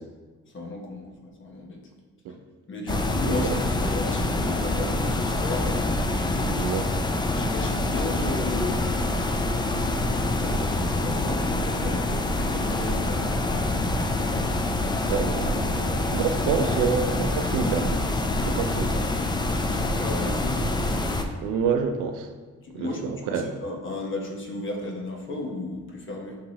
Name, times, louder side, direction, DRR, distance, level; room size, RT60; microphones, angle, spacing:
voice 1, 0.5-1.8 2.7-6.1 7.3-9.7 10.1-14.0 14.4-14.7 19.6-20.6 22.6-23.0 23.3-26.4, left 2 dB, 40° left, 0 dB, 0.9 m, -35 dB
sound 1, 2.9-21.2, left 2 dB, 15° left, 0.3 m, -26 dB
voice 2, 2.9-3.6 6.5-6.9 15.1-17.9 18.4-19.0 21.4-22.3 22.7-23.5, right 6 dB, 90° right, 6 dB, 0.5 m, -28 dB
6.4 x 2.8 x 2.8 m, 1.4 s
cardioid pair, 90°, 30 cm